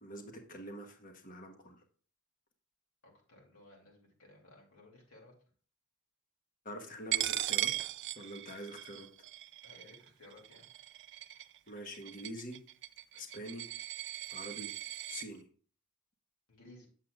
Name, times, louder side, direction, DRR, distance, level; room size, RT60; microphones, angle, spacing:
voice 1, 0.0-1.8 6.6-9.3 11.7-12.6 13.1-13.6 14.3-14.7 15.1-15.5, equal, 40° left, 4 dB, 1.2 m, -46 dB
voice 2, 3.3-5.3 9.6-10.7 16.5-16.9, left 2 dB, 65° left, -2 dB, 2.7 m, -58 dB
Coin (dropping), 7.1-15.3, right 14 dB, 55° right, 0.4 m, -38 dB
8.3 x 7.5 x 2.4 m, 0.42 s
head